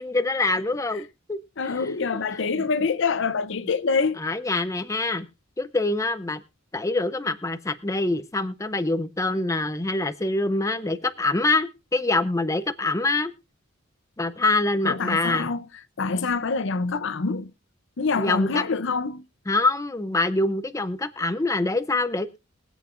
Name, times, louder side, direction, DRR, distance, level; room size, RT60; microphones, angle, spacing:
voice 1, 0.0-1.4 1.6-1.8 2.1-2.2 2.5-2.6 4.2-5.3 5.6-6.4 6.7-13.3 14.2-15.5 18.2-18.6 19.5-22.4, left 2 dB, 15° left, 0.6 m, -25 dB
voice 2, 1.6-4.2 14.8-15.7 16.0-17.5 18.0-19.2, left 4 dB, 65° left, 0.6 m, -25 dB
22.5 x 8.1 x 2.5 m
head